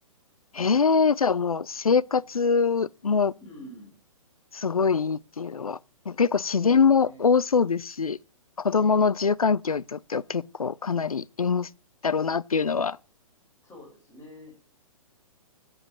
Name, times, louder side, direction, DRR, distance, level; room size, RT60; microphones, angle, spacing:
voice 1, 0.5-3.3 4.5-5.8 6.1-8.2 8.6-11.7 12.0-13.0, left 5 dB, 85° left, 0.5 m, -23 dB
voice 2, 3.4-4.0 6.6-7.2 8.8-9.1 13.6-14.6, left 1 dB, 20° left, 4.5 m, -46 dB
10.5 x 7.9 x 6.1 m
figure-of-eight pair, 120°, 18 cm